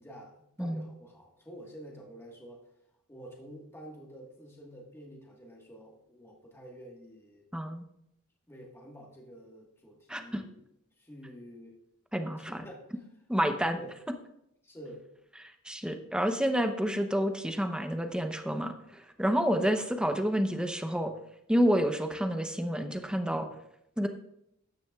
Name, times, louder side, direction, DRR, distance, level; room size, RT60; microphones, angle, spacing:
voice 1, 0.0-2.7 3.1-7.5 8.5-10.6 11.0-11.8 12.4-13.0 13.7-13.9 14.6-15.1 19.5-19.7 23.4-23.6, equal, 10° left, -2 dB, 1.5 m, -49 dB
voice 2, 7.5-7.8 10.1-10.4 12.1-12.6 13.3-13.8 15.6-21.1 21.5-23.5 24.0-24.1, equal, 5° right, 6 dB, 0.8 m, -29 dB
14.0 x 9.7 x 2.4 m, 0.78 s
head